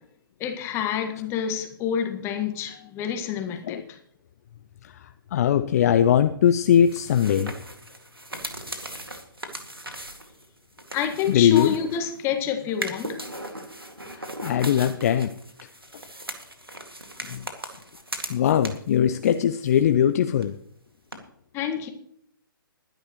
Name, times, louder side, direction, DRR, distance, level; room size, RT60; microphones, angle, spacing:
voice 1, 0.4-4.0 10.9-13.2 21.5-21.9, left 8 dB, 20° left, 1.6 m, -28 dB
voice 2, 5.3-7.5 11.3-11.7 14.1-15.3 17.3-17.4 18.3-20.5, left 9 dB, 40° left, 0.6 m, -20 dB
sound 1, 6.7-12.2 12.7-19.0 19.2-20.1 20.4-20.5 21.1-21.2, right 1 dB, 90° right, 2.1 m, -38 dB
21.0 x 10.5 x 3.1 m
figure-of-eight pair, 125°, 12 cm